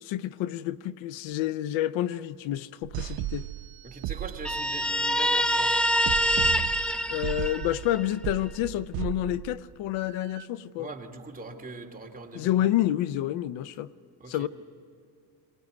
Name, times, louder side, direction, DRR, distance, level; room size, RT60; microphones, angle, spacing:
voice 1, 0.0-3.5 7.1-10.9 12.3-13.9 14.3-14.5, left 13 dB, 80° left, 16 dB, 0.7 m, -29 dB
sound 1, 2.8-4.9 6.1-10.5, right 15 dB, 70° right, 0.8 m, -36 dB
voice 2, 3.8-5.8 10.8-12.7 14.2-14.5, right 3 dB, 20° right, 2 dB, 2.5 m, -41 dB
Guitar, 4.4-8.0, equal, ahead, 0.7 m, -25 dB
23.5 x 20.0 x 9.6 m, 2.4 s
cardioid pair, 105°, 45 cm